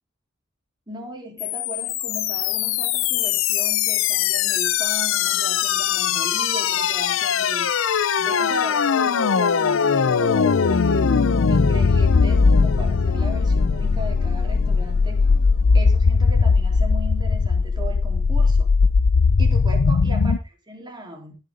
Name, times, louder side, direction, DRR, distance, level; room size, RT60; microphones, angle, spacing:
voice 1, 0.9-7.7 8.2-15.3 15.7-18.7 19.4-21.4, right 1 dB, 25° right, 1 dB, 3.9 m, -37 dB
sound 1, 1.4-20.4, left 5 dB, 75° left, 0.6 m, -20 dB
18.5 x 6.8 x 3.8 m, 0.30 s
head